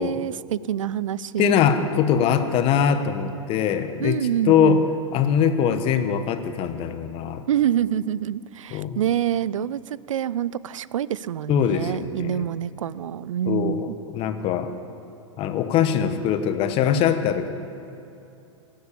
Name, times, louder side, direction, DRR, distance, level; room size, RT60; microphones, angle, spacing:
voice 1, 0.0-1.6 4.0-4.8 7.5-13.8, right 10 dB, 75° right, 20 dB, 0.4 m, -26 dB
voice 2, 1.4-4.2 4.5-4.8 5.1-7.4 8.7-9.0 11.5-12.4 13.5-14.7 15.4-17.5, left 8 dB, 35° left, 9 dB, 1.0 m, -22 dB
17.5 x 8.1 x 8.4 m, 2.8 s
hypercardioid pair, 110°, 17 cm